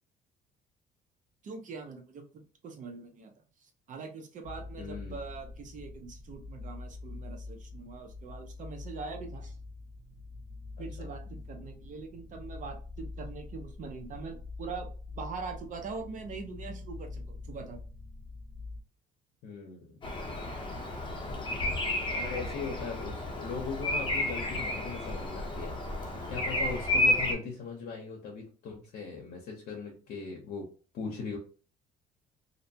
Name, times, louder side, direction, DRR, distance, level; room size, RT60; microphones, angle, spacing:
voice 1, 1.4-3.3 3.6-9.6 10.8-14.9 15.1-17.8 21.5-21.7, right 4 dB, 50° right, 4 dB, 0.7 m, -43 dB
sound 1, 4.4-18.8, left 3 dB, 80° right, 0.9 m, -44 dB
voice 2, 4.8-5.2 10.8-11.1 19.4-20.0 22.1-25.8 26.3-30.6 30.9-31.4, left 5 dB, 70° left, -1 dB, 0.7 m, -39 dB
Bird vocalization bird call bird song, 20.0-27.3, left 1 dB, 30° left, 0.8 m, -31 dB
2.6 x 2.1 x 2.7 m, 0.38 s
cardioid pair, 110°, 17 cm